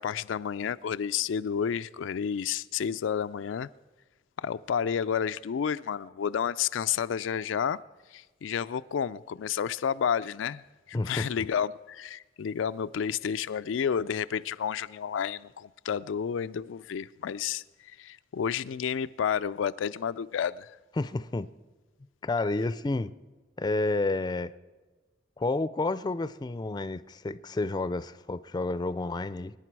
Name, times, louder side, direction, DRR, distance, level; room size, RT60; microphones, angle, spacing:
voice 1, 0.0-3.7 4.4-7.8 8.1-10.6 10.9-17.6 18.0-20.7, left 7 dB, 90° left, 0.4 m, -30 dB
voice 2, 10.9-11.3 21.0-21.5 22.2-23.1 23.6-24.5 25.4-29.5, left 2 dB, 20° left, 0.4 m, -30 dB
24.0 x 10.5 x 4.6 m
head